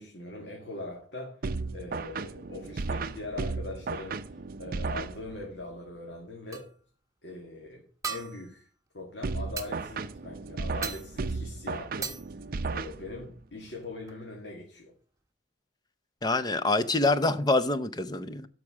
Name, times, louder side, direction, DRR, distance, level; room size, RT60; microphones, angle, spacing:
voice 1, 0.0-1.5 1.7-6.7 7.2-8.7 8.9-12.2 12.7-14.9, left 2 dB, 65° left, 2.1 m, -41 dB
sound 1, 1.4-5.6 9.2-13.4, right 4 dB, 50° right, 0.5 m, -35 dB
sound 2, 6.5-6.8 8.0-8.6 9.6-9.7 10.8-11.2 12.0-12.3 13.7-13.8 14.1-14.2, right 6 dB, 15° right, 1.0 m, -37 dB
voice 2, 16.2-18.5, left 2 dB, 20° left, 0.6 m, -26 dB
12.0 x 4.9 x 6.2 m
head